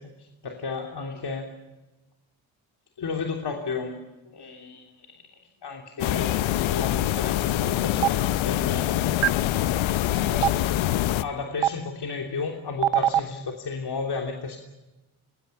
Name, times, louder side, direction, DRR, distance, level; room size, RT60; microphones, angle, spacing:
voice 1, 0.0-1.5 3.0-4.1 4.3-5.1 5.6-6.4 6.6-9.1 10.1-10.7 11.2-14.6, left 4 dB, 55° left, 2 dB, 3.2 m, -33 dB
sound 1, 6.0-11.2, left 13 dB, 75° left, 0.9 m, -25 dB
Stream, 8.0-8.1 9.2-9.3 10.4-10.5 11.6-11.7 12.8-13.2, right 12 dB, 75° right, 0.8 m, -19 dB
26.0 x 21.0 x 7.0 m, 1.1 s
supercardioid pair, 55°, 47 cm